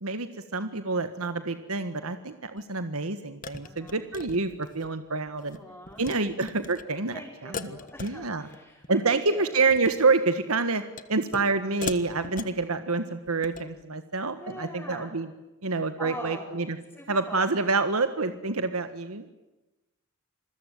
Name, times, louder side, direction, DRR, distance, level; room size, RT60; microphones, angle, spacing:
voice 1, 0.0-5.6 6.0-7.1 7.4-8.5 8.9-10.8 11.1-15.3 15.6-16.8 17.1-19.3, right 3 dB, 80° right, 10 dB, 1.6 m, -27 dB
sound 1, 2.6-2.7 3.4-4.9 5.3-5.6 5.9-6.2 6.4-6.8 7.5-8.6 8.8-9.2 9.6-10.0 11.0-11.5 11.8-12.6 13.3-13.7, left 4 dB, 40° left, 1.5 m, -39 dB
voice 2, 3.6-4.1 5.5-6.0 7.1-9.5 14.4-15.1 16.0-16.5 16.9-17.6 18.7-18.8, left 1 dB, 10° left, -4 dB, 5.6 m, -42 dB
28.0 x 21.5 x 9.3 m, 1.0 s
head